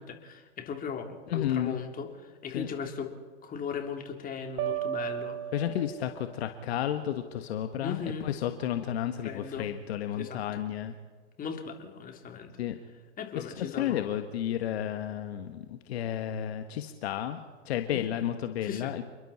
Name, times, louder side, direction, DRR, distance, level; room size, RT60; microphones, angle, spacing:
voice 1, 0.0-3.1 3.4-5.4 7.8-8.3 9.2-9.7 10.2-10.4 11.4-12.5 13.2-14.1 17.9-18.3 18.6-19.0, left 6 dB, 25° left, 3 dB, 3.4 m, -38 dB
voice 2, 1.3-1.8 2.5-2.7 5.5-10.9 12.6-12.8 13.3-17.4 17.6-19.0, left 11 dB, 60° left, 8 dB, 1.6 m, -32 dB
sound 1, 4.6-6.5, right 12 dB, 40° right, 3.5 m, -35 dB
29.0 x 22.0 x 4.4 m, 1.4 s
hypercardioid pair, 105°, 35 cm